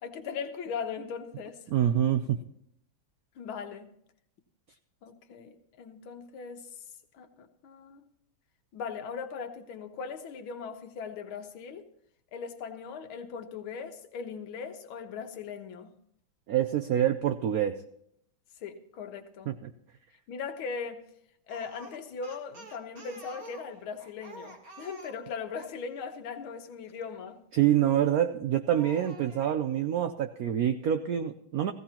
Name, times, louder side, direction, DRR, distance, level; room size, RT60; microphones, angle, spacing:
voice 1, 0.0-1.6 3.4-3.9 5.0-6.7 7.1-8.1 8.7-11.9 12.3-15.9 18.6-19.5 20.3-21.0 21.5-27.4, left 6 dB, 85° left, 1.8 m, -39 dB
voice 2, 1.7-2.4 16.5-17.8 19.5-19.7 27.5-31.7, right 10 dB, 85° right, 0.8 m, -26 dB
Speech, 21.5-25.8 27.8-28.2 28.7-29.6, right 2 dB, 45° right, 2.0 m, -49 dB
16.5 x 15.5 x 2.9 m
omnidirectional pair, 2.2 m